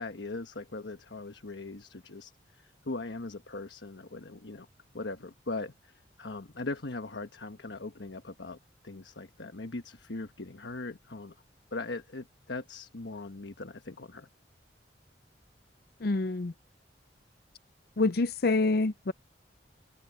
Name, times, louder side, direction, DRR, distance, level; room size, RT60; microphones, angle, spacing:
voice 1, 0.0-4.7 4.9-8.6 8.8-11.3 11.7-14.3, left 3 dB, 75° left, 1.2 m, -40 dB
voice 2, 16.0-16.5 18.0-19.1, left 3 dB, 55° left, 0.6 m, -26 dB
open air
head